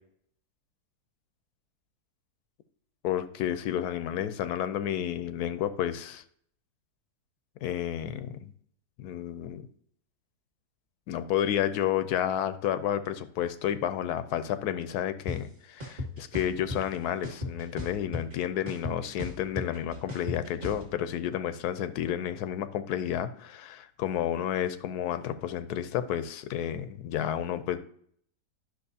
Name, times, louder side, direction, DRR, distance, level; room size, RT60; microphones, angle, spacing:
voice 1, 3.0-6.2 7.6-8.5 9.0-9.6 11.1-27.8, left 10 dB, 80° left, 12 dB, 1.1 m, -31 dB
sound 1, 15.3-15.4 15.8-16.8 17.2-18.3 18.7-20.8, left 2 dB, 30° right, 1.7 m, -35 dB
10.5 x 6.2 x 2.7 m, 0.62 s
omnidirectional pair, 1.7 m